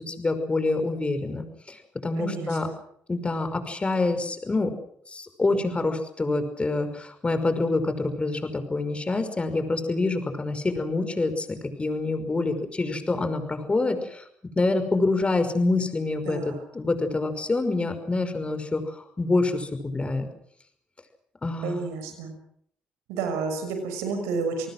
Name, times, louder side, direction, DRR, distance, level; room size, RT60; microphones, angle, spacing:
voice 1, 0.0-2.7 3.1-4.7 5.1-14.2 14.6-20.3 21.4-21.8, left 3 dB, 25° left, 8 dB, 5.6 m, -26 dB
voice 2, 2.2-2.7 16.3-16.6 21.6-22.3 23.1-24.7, right 4 dB, 85° right, 6 dB, 6.1 m, -30 dB
29.5 x 19.5 x 6.4 m, 0.64 s
supercardioid pair, 65°, 5 cm